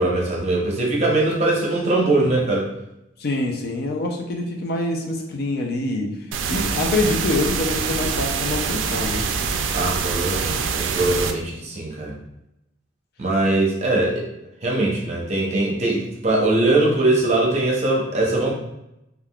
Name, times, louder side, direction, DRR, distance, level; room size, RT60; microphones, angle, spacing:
voice 1, 0.0-2.7 9.7-12.1 13.2-14.3 14.6-18.5, right 2 dB, 35° right, -2 dB, 0.7 m, -21 dB
voice 2, 3.2-6.1 6.5-9.2, left 2 dB, 55° left, 1 dB, 0.4 m, -25 dB
sound 1, 6.3-11.3, right 5 dB, 85° right, 0.3 m, -25 dB
3.4 x 2.4 x 2.3 m, 0.86 s
head